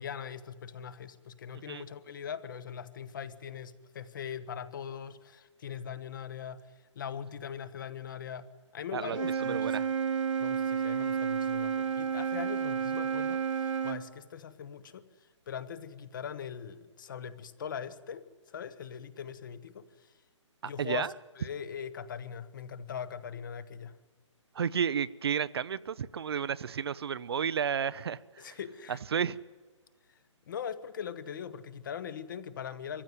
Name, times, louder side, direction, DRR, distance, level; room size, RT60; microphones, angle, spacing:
voice 1, 0.0-6.7 6.9-9.8 10.4-15.0 15.5-20.1 20.6-23.9 28.4-29.0 30.5-33.0, left 7 dB, 40° left, 14 dB, 1.1 m, -41 dB
voice 2, 8.9-9.9 20.6-21.1 24.5-28.6 28.9-29.4, right 7 dB, 55° right, 16 dB, 0.6 m, -32 dB
Wind instrument woodwind instrument, 9.1-14.0, right 7 dB, 75° right, 1.4 m, -31 dB
23.0 x 15.0 x 9.6 m, 1.4 s
hypercardioid pair, 165°, 16 cm